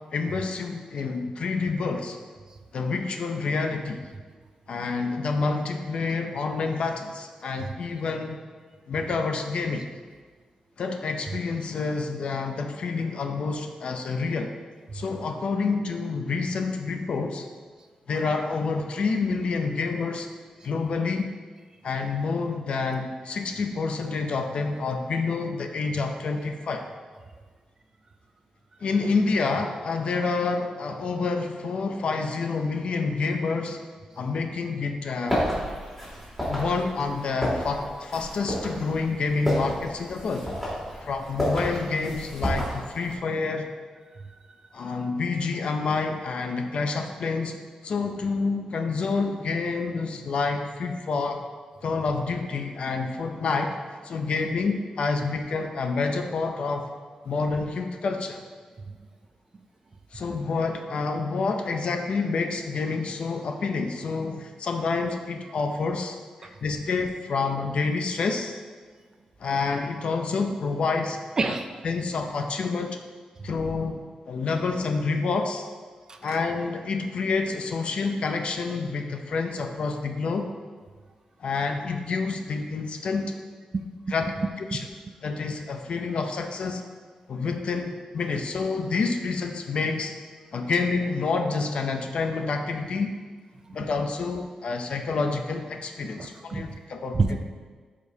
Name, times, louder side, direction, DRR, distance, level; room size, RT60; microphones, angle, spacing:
voice 1, 0.1-2.2 2.7-4.0 4.7-8.4 8.9-9.9 10.8-14.5 14.9-17.5 18.1-20.3 20.6-21.3 21.8-26.8 28.8-33.8 34.2-35.5 36.5-40.5 41.0-43.7 44.7-51.4 51.8-53.8 54.0-56.9 57.2-58.4 60.1-68.6 69.4-71.5 71.8-73.0 73.4-75.7 76.2-80.5 81.4-83.3 84.1-84.3 84.7-84.9 85.2-86.8 87.3-90.1 90.5-93.1 93.7-97.2, left 4 dB, 55° left, 5 dB, 0.5 m, -28 dB
sound 1, 35.3-43.1, equal, 5° left, 2.3 m, -31 dB
voice 2, 71.4-71.7 76.1-76.4 83.7-84.1 84.7-84.8 93.7-93.8 96.2-96.7 97.1-97.4, right 3 dB, 30° right, 7 dB, 0.4 m, -28 dB
12.5 x 5.0 x 2.8 m, 1.5 s
wide cardioid pair, 150°, 2 cm